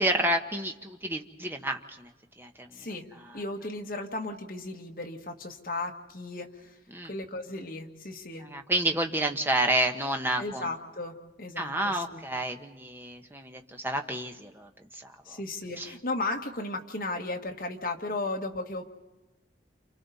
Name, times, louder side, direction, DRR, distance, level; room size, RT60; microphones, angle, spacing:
voice 1, 0.0-2.1 2.4-2.7 6.9-7.1 8.4-10.6 11.6-15.4 15.8-15.9, right 1 dB, 10° right, 4 dB, 1.1 m, -30 dB
voice 2, 2.7-6.8 7.0-8.5 10.4-12.3 15.2-18.8, left 2 dB, 50° left, 2 dB, 1.8 m, -35 dB
29.0 x 28.5 x 4.2 m, 1.1 s
head